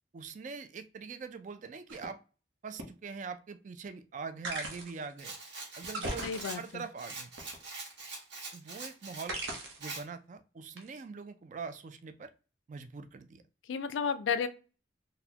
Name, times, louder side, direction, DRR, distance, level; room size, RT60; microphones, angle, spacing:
voice 1, 0.1-2.2 2.6-5.3 5.8-7.3 8.5-9.4 9.8-12.3 12.7-13.4, right 5 dB, 40° right, 9 dB, 0.3 m, -43 dB
sound 1, 1.9-2.0 2.8-2.9 4.4-5.0 5.8-6.9 7.4-8.0 9.3-9.9 10.8-11.0, right 2 dB, 80° right, 0.8 m, -38 dB
Rattle, 5.2-9.3 9.8-10.0, right 3 dB, 60° right, 1.3 m, -44 dB
voice 2, 6.2-6.8 13.7-14.5, left 6 dB, 75° left, 11 dB, 0.4 m, -32 dB
4.0 x 2.1 x 2.8 m, 0.34 s
head